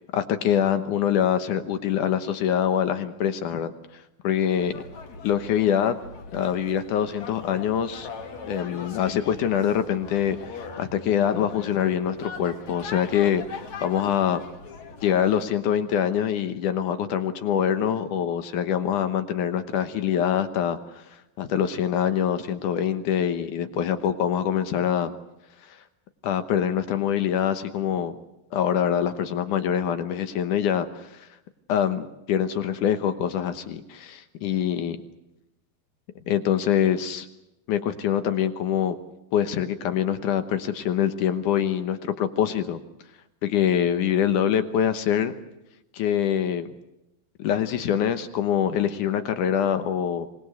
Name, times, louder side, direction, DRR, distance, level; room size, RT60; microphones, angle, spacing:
voice 1, 0.1-4.8 5.2-6.0 6.3-8.1 8.4-14.4 15.0-25.1 25.7-25.8 26.2-28.2 28.5-31.3 31.7-35.0 36.3-37.3 37.7-39.0 39.3-42.8 43.4-45.3 45.9-46.7 47.4-50.3, left 9 dB, 65° left, 10 dB, 2.3 m, -24 dB
sound 1, 4.6-15.4, left 4 dB, 50° left, 3.5 m, -41 dB
25.5 x 20.0 x 8.0 m, 0.89 s
omnidirectional pair, 4.3 m